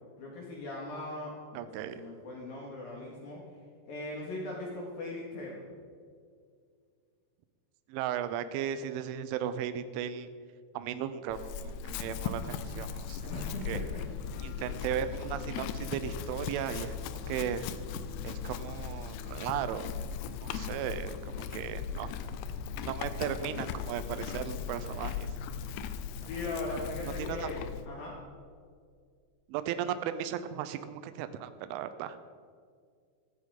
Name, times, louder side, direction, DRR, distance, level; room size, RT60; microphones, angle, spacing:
voice 1, 0.2-3.4 3.9-5.6 13.3-13.8 26.2-28.2, left 2 dB, 60° left, -3 dB, 3.2 m, -39 dB
voice 2, 1.5-2.0 7.9-10.3 10.7-13.2 13.7-13.8 14.4-17.0 17.3-17.7 18.2-19.9 20.4-22.1 22.8-25.3 26.2-26.3 27.2-27.5 29.5-32.2, right 9 dB, 85° right, 11 dB, 3.1 m, -36 dB
Chewing mastication / Livestock farm animals working animals, 11.3-27.9, left 7 dB, 85° left, 2.8 m, -38 dB
17.0 x 14.5 x 3.8 m, 2.1 s
omnidirectional pair, 5.5 m